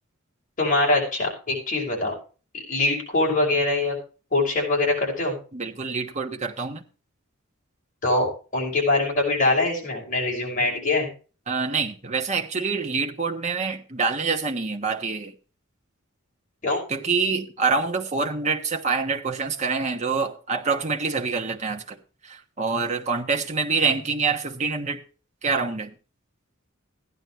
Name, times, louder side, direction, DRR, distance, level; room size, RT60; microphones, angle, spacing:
voice 1, 0.6-2.1 2.5-4.0 4.3-5.4 8.0-11.1 16.6-16.8, left 2 dB, 40° left, 5.9 m, -23 dB
voice 2, 5.5-6.8 11.5-15.3 16.9-22.0 22.2-25.0 25.4-25.9, right 4 dB, 35° right, 1.2 m, -26 dB
15.5 x 11.0 x 3.2 m
head